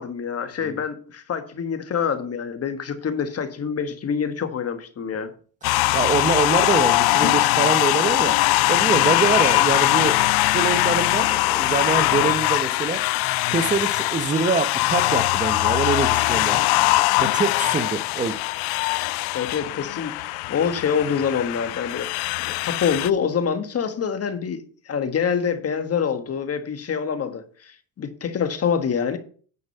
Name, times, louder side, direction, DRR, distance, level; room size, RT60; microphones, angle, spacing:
voice 1, 0.0-5.3 19.3-22.1 22.4-29.2, left 7 dB, 40° left, 1.4 m, -26 dB
sound 1, 5.6-23.1, left 20 dB, 80° left, 0.5 m, -21 dB
voice 2, 5.9-8.4 8.7-13.0 13.5-16.7 17.2-18.4, right 5 dB, 20° right, 0.9 m, -25 dB
9.6 x 5.2 x 5.5 m
cardioid pair, 105°, 37 cm